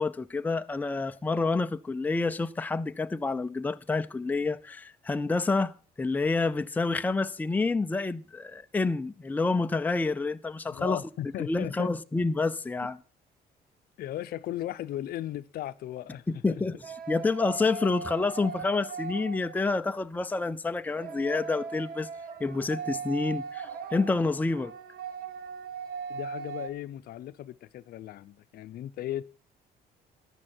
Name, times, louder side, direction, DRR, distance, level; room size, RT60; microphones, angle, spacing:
voice 1, 0.0-11.0 11.4-13.0 16.3-16.7 17.1-22.1 22.4-24.7, left 3 dB, 10° left, 0.5 m, -28 dB
voice 2, 10.7-11.9 14.0-16.2 16.5-16.6 26.1-29.2, left 13 dB, 65° left, 0.6 m, -36 dB
sound 1, 16.8-19.9 20.9-26.7, right 5 dB, 65° right, 1.3 m, -39 dB
14.0 x 10.0 x 4.4 m
cardioid pair, 110°, 17 cm